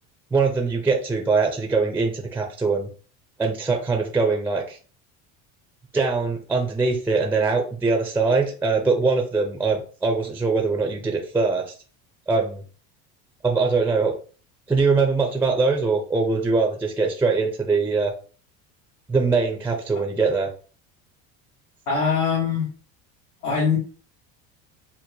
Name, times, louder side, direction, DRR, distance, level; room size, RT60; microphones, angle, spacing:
voice 1, 0.3-2.9 3.4-4.8 5.9-11.7 12.3-12.6 13.4-14.2 14.7-18.1 19.1-20.5, right 4 dB, 5° right, 3 dB, 0.4 m, -22 dB
voice 2, 21.9-22.7 23.4-23.8, left 5 dB, 85° left, -5 dB, 1.3 m, -22 dB
4.4 x 2.1 x 2.6 m, 0.39 s
cardioid pair, 130°, 33 cm